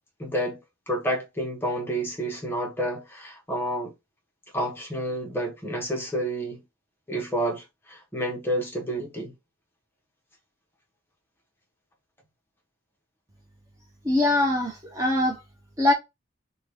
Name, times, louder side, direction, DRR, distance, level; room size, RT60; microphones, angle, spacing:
voice 1, 0.2-3.9 4.5-6.6 7.1-9.3, right 1 dB, 10° left, 0.9 m, -29 dB
voice 2, 14.0-15.4 15.8-15.9, left 2 dB, 15° right, 0.6 m, -22 dB
2.8 x 2.3 x 3.2 m
head